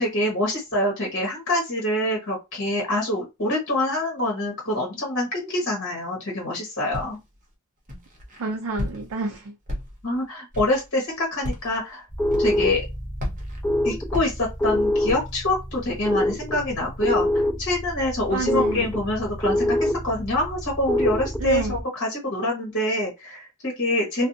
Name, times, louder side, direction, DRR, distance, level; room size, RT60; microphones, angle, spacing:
voice 1, 0.0-7.2 10.0-12.0 12.4-12.8 13.8-24.3, left 1 dB, 55° left, 1.1 m, -25 dB
Walk footsteps, 6.9-7.4 7.9-8.4 8.8-9.3 9.7-10.2 10.5-10.9 11.4-11.8 12.3-12.8 13.2-14.7 15.1-15.4, left 1 dB, 35° right, 0.8 m, -33 dB
voice 2, 8.4-9.5 18.3-18.9 21.4-21.8, right 3 dB, 65° right, 0.4 m, -29 dB
sound 1, 12.1-21.8, left 1 dB, 10° left, 0.6 m, -26 dB
2.6 x 2.1 x 2.6 m
head